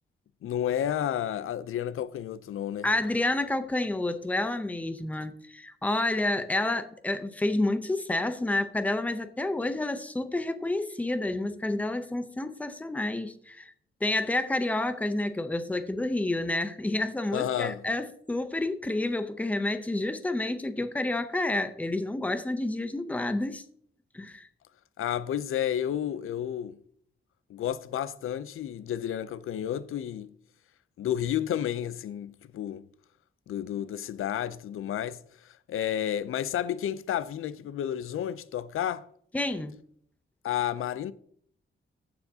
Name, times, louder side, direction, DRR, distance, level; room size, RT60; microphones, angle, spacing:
voice 1, 0.4-2.9 17.3-17.8 25.0-26.8 27.5-30.3 31.0-32.8 33.5-39.1 40.4-41.1, left 10 dB, 80° left, 0.5 m, -31 dB
voice 2, 2.8-13.7 14.0-23.6 24.1-24.5 39.3-39.7, left 2 dB, 5° left, 0.6 m, -29 dB
14.5 x 6.9 x 2.7 m
wide cardioid pair, 175°, 21 cm